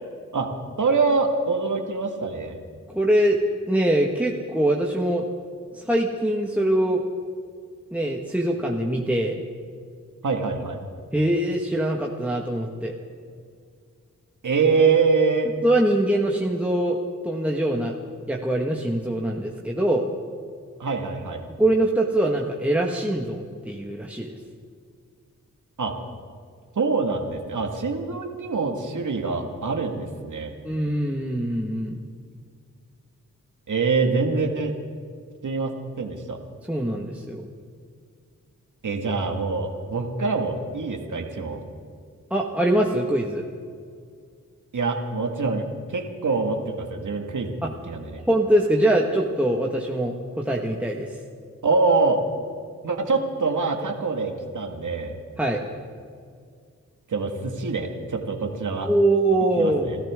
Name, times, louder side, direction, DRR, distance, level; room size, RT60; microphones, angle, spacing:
voice 1, 0.8-2.6 10.2-10.8 14.4-15.5 20.8-21.4 25.8-25.9 26.8-30.5 33.7-34.8 35.4-36.4 38.8-41.6 44.7-45.6 45.9-47.5 47.9-48.2 51.6-52.2 52.8-55.1 57.1-58.9 59.6-60.0, right 4 dB, 60° right, 3 dB, 2.1 m, -24 dB
voice 2, 2.9-3.4 3.7-5.2 5.7-7.0 7.9-9.4 11.1-12.9 15.6-17.0 17.2-17.9 18.3-20.1 21.6-24.4 30.6-32.0 36.7-37.5 42.3-43.4 48.3-51.1 55.4-55.6 58.8-60.0, right 1 dB, 5° right, -1 dB, 1.8 m, -23 dB
28.0 x 13.5 x 3.8 m, 2.1 s
supercardioid pair, 40°, 34 cm